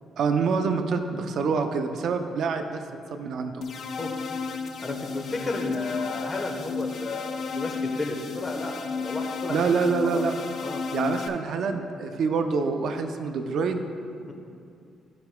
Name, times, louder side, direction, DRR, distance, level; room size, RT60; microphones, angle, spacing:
voice 1, 0.2-2.8 3.1-3.6 9.5-10.3 10.9-13.8, right 5 dB, 70° right, 6 dB, 0.6 m, -26 dB
sound 1, 3.6-11.3, left 5 dB, 60° left, 0.6 m, -33 dB
voice 2, 4.8-10.2 10.6-10.9 14.2-14.3, left 2 dB, 30° left, 2 dB, 1.1 m, -33 dB
13.5 x 5.8 x 2.3 m, 2.4 s
cardioid pair, 90°, 0 cm